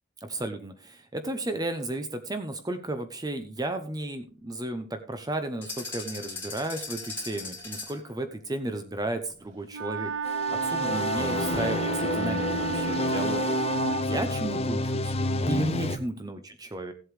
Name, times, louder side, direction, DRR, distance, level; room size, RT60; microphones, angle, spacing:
voice 1, 0.2-13.5 14.0-15.1 15.5-16.9, right 1 dB, 20° right, 8 dB, 0.8 m, -33 dB
sound 1, 5.6-8.1, left 3 dB, 15° left, 3.7 m, -38 dB
Wind instrument woodwind instrument, 9.7-14.1, right 5 dB, 85° right, 0.6 m, -31 dB
sound 2, 10.2-16.0, left 2 dB, 35° left, 0.8 m, -29 dB
16.0 x 8.0 x 3.3 m, 0.38 s
head